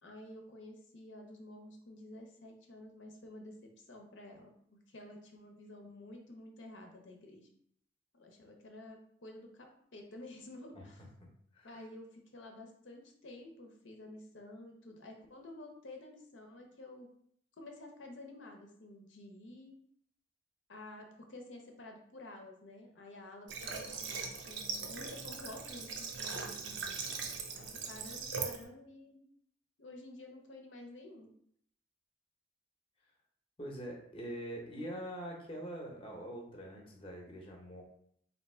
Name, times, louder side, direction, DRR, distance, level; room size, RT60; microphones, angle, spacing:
voice 1, 0.0-7.5 8.1-11.0 11.6-17.1 17.6-19.7 20.7-29.2 29.8-31.3, left 1 dB, 75° left, 2 dB, 0.7 m, -51 dB
Water / Water tap faucet, 23.5-28.6, right 5 dB, 65° right, 0.6 m, -40 dB
voice 2, 33.6-37.8, right 1 dB, 30° left, 0 dB, 0.8 m, -43 dB
3.4 x 2.8 x 4.3 m, 0.66 s
head